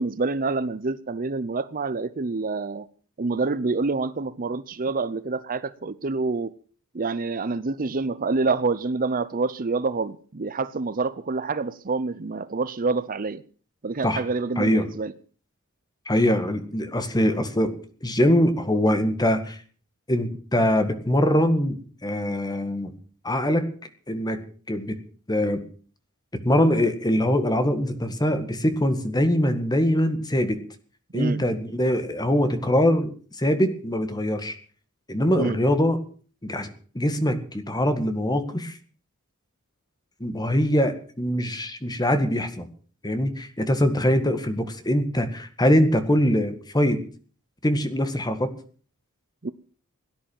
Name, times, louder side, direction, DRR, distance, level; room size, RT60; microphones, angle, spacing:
voice 1, 0.0-2.9 3.2-6.5 6.9-13.4 13.8-15.1 31.1-31.4 35.3-35.6 49.4-49.5, right 3 dB, 40° right, 0.7 m, -27 dB
voice 2, 14.6-14.9 16.1-17.7 18.0-19.6 20.1-21.8 22.0-22.9 23.2-23.7 24.1-24.4 24.7-25.0 25.3-25.6 26.4-30.6 31.1-33.1 33.4-34.6 35.1-36.0 36.4-38.8 40.2-42.7 43.0-47.0 47.6-48.5, equal, 20° left, 1.9 m, -23 dB
17.0 x 10.5 x 7.3 m
head